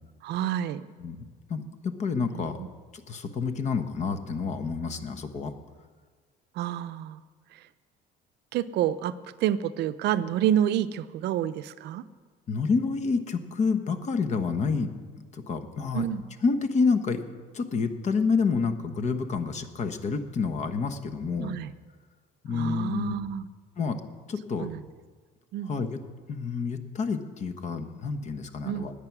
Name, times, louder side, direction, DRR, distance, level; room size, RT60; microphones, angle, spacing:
voice 1, 0.2-0.9 2.3-2.7 6.6-7.2 7.5-7.6 8.5-12.0 15.9-16.2 21.4-21.7 22.5-23.5 24.6-24.8 25.5-25.7 28.6-28.9, right 11 dB, 65° right, 13 dB, 0.6 m, -29 dB
voice 2, 1.5-2.6 2.9-5.5 12.5-14.9 15.3-16.0 16.4-17.2 17.5-21.6 22.4-23.1 23.8-24.0 24.3-24.7 25.7-26.0 26.3-28.9, left 5 dB, 40° left, 9 dB, 1.1 m, -28 dB
19.5 x 8.5 x 6.0 m, 1.5 s
cardioid pair, 145°, 18 cm